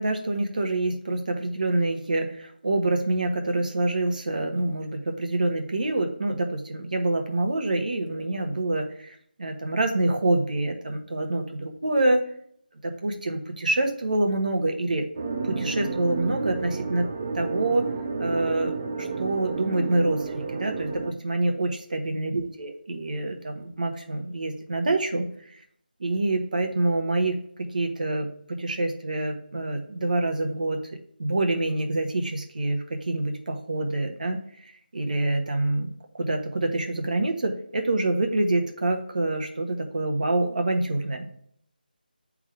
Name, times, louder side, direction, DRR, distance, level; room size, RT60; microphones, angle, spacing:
voice 1, 0.0-12.2 12.8-15.1 15.4-17.1 17.3-17.9 18.2-25.6 26.0-27.4 27.7-28.3 28.6-30.8 31.2-41.3, right 2 dB, 55° right, 3 dB, 1.2 m, -26 dB
sound 1, 15.2-21.1, right 4 dB, 20° right, 0.4 m, -31 dB
9.8 x 3.6 x 3.6 m, 0.66 s
figure-of-eight pair, 175°, 5 cm